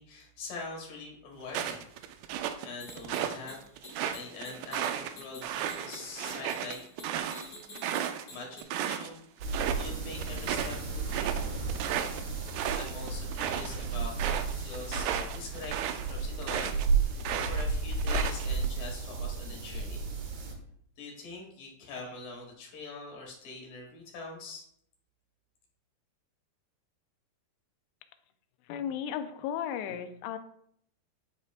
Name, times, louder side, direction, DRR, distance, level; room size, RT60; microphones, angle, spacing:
voice 1, 0.0-1.9 2.3-3.6 4.1-6.8 8.3-11.6 12.7-15.8 16.0-20.0 21.0-24.7, left 3 dB, 60° left, 0 dB, 3.1 m, -44 dB
sound 1, 1.5-3.4 3.8-9.1 9.4-9.9 10.2-16.9 17.2-18.7, right 10 dB, 85° right, 2.6 m, -34 dB
sound 2, 2.8-8.6, left 3 dB, 40° left, 1.5 m, -49 dB
sound 3, 9.4-20.5, right 4 dB, 65° right, 1.7 m, -33 dB
voice 2, 28.6-30.4, left 9 dB, 90° left, 9 dB, 2.7 m, -35 dB
10.0 x 5.0 x 2.4 m, 0.67 s
omnidirectional pair, 4.7 m